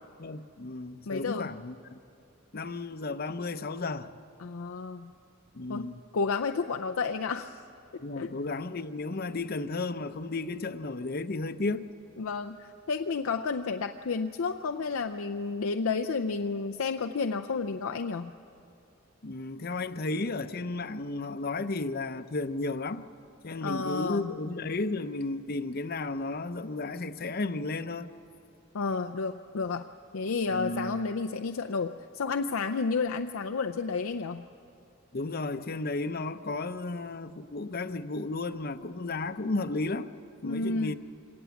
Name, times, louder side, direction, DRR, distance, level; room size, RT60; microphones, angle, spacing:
voice 1, 0.2-2.0 2.5-4.1 5.5-6.0 8.0-11.9 19.2-23.0 23.4-28.1 30.5-31.0 35.1-40.1 40.4-41.0, left 3 dB, 45° left, 0.7 m, -33 dB
voice 2, 1.1-1.5 4.4-5.1 5.7-5.9 6.1-7.6 8.2-8.3 12.2-18.3 23.6-24.3 28.7-29.9 30.1-34.4 40.4-41.0, left 4 dB, 85° left, 0.5 m, -31 dB
26.0 x 18.5 x 7.1 m
head